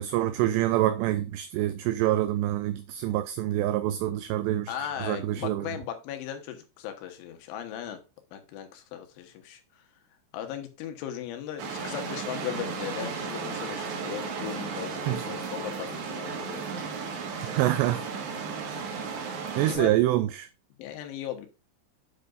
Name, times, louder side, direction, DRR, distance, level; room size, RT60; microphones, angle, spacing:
voice 1, 0.0-4.7 5.0-5.7 15.1-15.2 17.4-18.0 19.6-20.5, right 14 dB, 85° right, 2.4 m, -26 dB
voice 2, 4.7-8.0 8.3-9.8 10.3-16.6 18.9-19.4 19.7-19.9 20.8-21.5, left 10 dB, 80° left, 3.6 m, -37 dB
sound 1, 11.6-19.8, right 5 dB, 70° right, 3.7 m, -34 dB
8.3 x 7.8 x 2.5 m
omnidirectional pair, 5.5 m